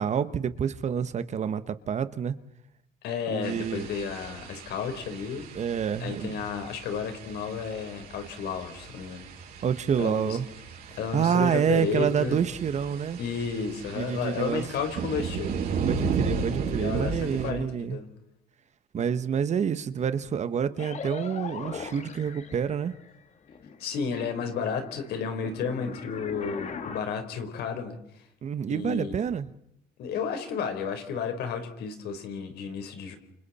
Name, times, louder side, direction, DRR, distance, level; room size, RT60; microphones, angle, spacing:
voice 1, 0.0-2.4 3.3-3.9 5.5-6.3 9.6-10.5 10.9-13.2 13.9-14.7 15.8-18.0 18.9-22.9 28.4-29.5, right 7 dB, 45° right, 1.2 m, -28 dB
voice 2, 3.0-5.5 6.0-9.3 10.0-10.4 11.0-12.4 13.2-15.5 16.7-18.1 19.0-19.1 23.8-28.0 28.7-29.1 30.0-33.2, left 6 dB, 75° left, 4.3 m, -32 dB
sound 1, 3.4-17.5, right 5 dB, 65° right, 5.6 m, -35 dB
sound 2, 20.8-23.2 23.5-27.0, left 6 dB, 45° left, 1.9 m, -40 dB
28.5 x 28.0 x 4.3 m
cardioid pair, 110°, 17 cm